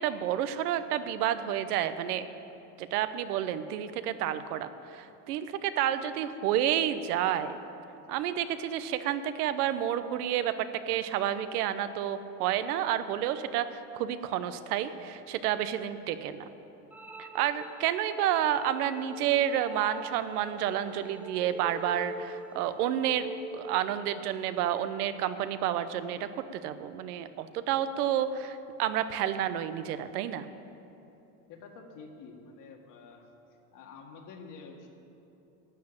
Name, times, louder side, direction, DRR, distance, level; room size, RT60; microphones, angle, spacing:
voice 1, 0.0-2.2 2.8-7.6 8.1-16.5 17.2-23.3 23.5-30.5, right 10 dB, 80° right, 12 dB, 0.9 m, -30 dB
sound 1, 16.9-23.9, right 1 dB, 5° right, 0.4 m, -44 dB
voice 2, 31.5-33.3 33.7-34.9, left 4 dB, 45° left, 2 dB, 1.9 m, -48 dB
12.5 x 7.7 x 8.8 m, 2.9 s
supercardioid pair, 115°, 45 cm